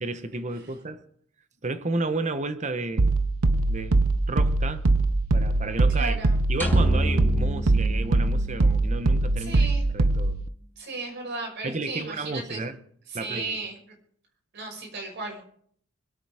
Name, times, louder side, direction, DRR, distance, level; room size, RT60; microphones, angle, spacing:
voice 1, 0.0-1.0 1.6-3.1 3.7-4.0 4.3-4.9 5.3-6.2 6.5-9.7 9.9-10.4 11.6-12.8 13.1-13.6, right 3 dB, 35° right, 1.0 m, -32 dB
sound 1, 3.0-10.5, right 2 dB, 80° right, 0.8 m, -22 dB
voice 2, 5.9-6.3 9.4-9.8 10.8-12.6 13.1-13.8 14.5-15.4, right 3 dB, 55° right, 5.5 m, -35 dB
sound 2, 6.6-8.9, equal, 10° left, 1.5 m, -28 dB
25.0 x 8.6 x 4.9 m
head